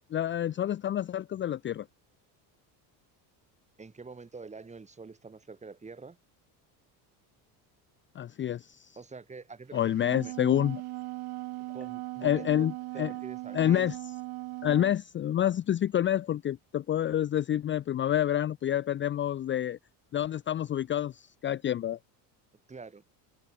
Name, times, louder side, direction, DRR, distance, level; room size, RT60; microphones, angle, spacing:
voice 1, 0.1-1.8 8.2-8.9 9.7-10.8 12.2-12.7 13.0-13.1 13.5-14.0 14.6-19.8 20.1-22.0, left 11 dB, 30° left, 0.6 m, -28 dB
voice 2, 3.8-6.2 9.0-10.3 11.7-12.7 12.9-13.9 22.7-23.0, right 4 dB, 15° right, 5.6 m, -46 dB
Wind instrument woodwind instrument, 9.8-15.0, right 21 dB, 65° right, 1.1 m, -39 dB
cardioid pair, 140°, 40 cm